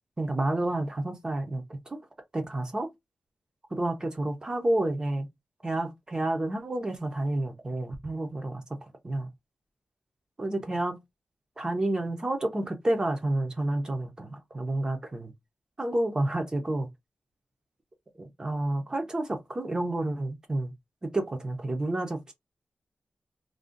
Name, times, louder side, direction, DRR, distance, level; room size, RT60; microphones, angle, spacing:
voice 1, 0.2-2.0 2.3-2.9 3.7-5.3 5.6-8.8 9.0-9.3 10.4-11.0 11.6-15.3 15.8-16.9 18.2-20.7 21.0-22.3, right 1 dB, 25° right, 0.5 m, -30 dB
2.5 x 2.1 x 3.7 m
wide cardioid pair, 170°, 3 cm